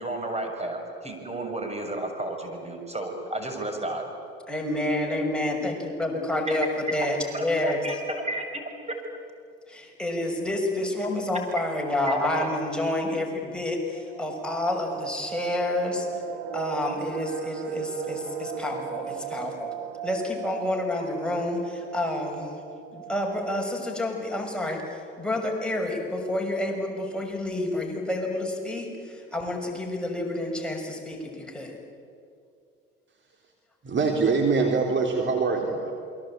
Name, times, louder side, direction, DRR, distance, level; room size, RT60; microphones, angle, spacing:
voice 1, 0.0-4.0 6.1-6.6 7.3-8.6 12.0-12.5, right 1 dB, 20° right, 4 dB, 6.9 m, -32 dB
voice 2, 4.5-7.8 9.7-16.1 16.5-19.7 20.0-22.6 22.9-31.8, left 1 dB, 5° left, 0 dB, 6.4 m, -29 dB
sound 1, 13.9-24.7 25.0-25.1 25.5-25.7 26.1-26.5 27.1-27.2 27.3-27.9 28.1-28.2, right 9 dB, 65° right, 2.8 m, -37 dB
voice 3, 33.8-35.9, right 4 dB, 40° right, 2 dB, 3.7 m, -24 dB
28.0 x 23.0 x 9.0 m, 2.4 s
hypercardioid pair, 60°, 29 cm